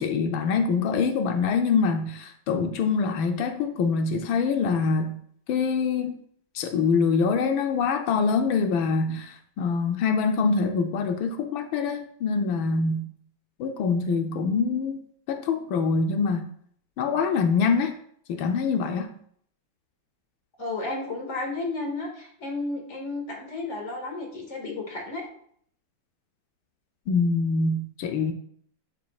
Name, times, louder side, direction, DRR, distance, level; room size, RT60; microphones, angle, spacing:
voice 1, 0.0-5.2 5.5-6.1 6.5-13.1 13.6-15.0 15.3-16.5 17.0-18.0 18.3-19.1 27.1-28.3, left 5 dB, 85° left, 1.5 m, -24 dB
voice 2, 20.6-25.3, left 2 dB, 40° left, 2.1 m, -32 dB
11.0 x 6.3 x 2.4 m
omnidirectional pair, 2.1 m